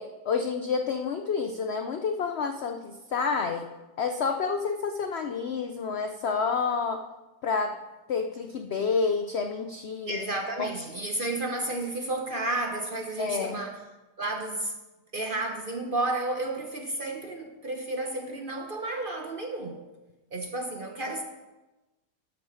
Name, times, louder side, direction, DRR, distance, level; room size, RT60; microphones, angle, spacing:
voice 1, 0.0-3.7 4.0-7.0 7.4-7.8 8.1-10.2 10.6-10.7 13.2-13.6, left 5 dB, 75° left, 6 dB, 0.6 m, -29 dB
voice 2, 10.0-13.8 14.2-14.7 15.1-19.8 20.3-21.2, right 2 dB, 45° right, 3 dB, 0.7 m, -32 dB
12.5 x 6.1 x 4.9 m, 1.1 s
omnidirectional pair, 1.8 m